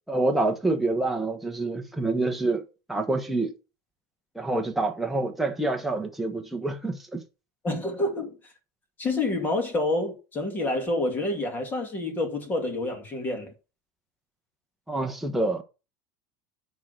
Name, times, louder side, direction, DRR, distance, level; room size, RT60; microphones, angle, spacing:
voice 1, 0.1-3.5 4.3-7.2 14.9-15.6, right 2 dB, ahead, 1.1 m, -27 dB
voice 2, 7.6-8.4 9.0-13.5, left 2 dB, 20° left, 2.4 m, -28 dB
10.5 x 3.8 x 6.6 m
supercardioid pair, 160°, 10 cm